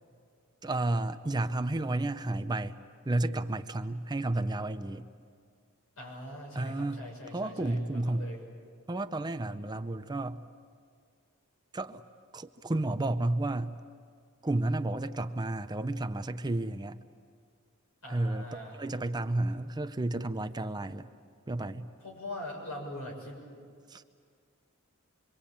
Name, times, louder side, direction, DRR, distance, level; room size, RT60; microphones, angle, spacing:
voice 1, 0.6-2.8 3.0-5.1 6.5-8.3 8.9-10.5 11.7-12.0 12.3-13.8 14.4-17.0 18.1-21.1 21.5-21.9 23.9-24.0, right 2 dB, 20° right, 10 dB, 0.6 m, -32 dB
voice 2, 6.0-8.4 18.0-18.8 22.0-23.4, left 1 dB, 75° left, 0 dB, 7.0 m, -42 dB
26.0 x 23.5 x 8.7 m, 2.1 s
head